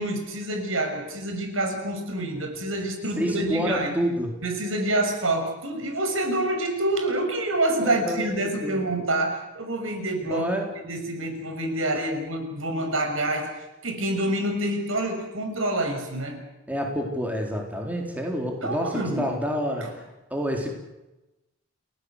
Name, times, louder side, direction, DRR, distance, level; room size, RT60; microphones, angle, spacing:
voice 1, 0.0-3.9 4.4-10.5 10.8-16.4 18.6-19.3 19.8-19.9, right 1 dB, 70° right, 5 dB, 6.5 m, -27 dB
voice 2, 3.2-4.4 7.8-8.3 8.6-8.8 10.2-10.7 16.7-20.0 20.3-20.8, equal, 5° right, 1 dB, 4.0 m, -28 dB
30.0 x 19.0 x 8.2 m, 0.98 s
head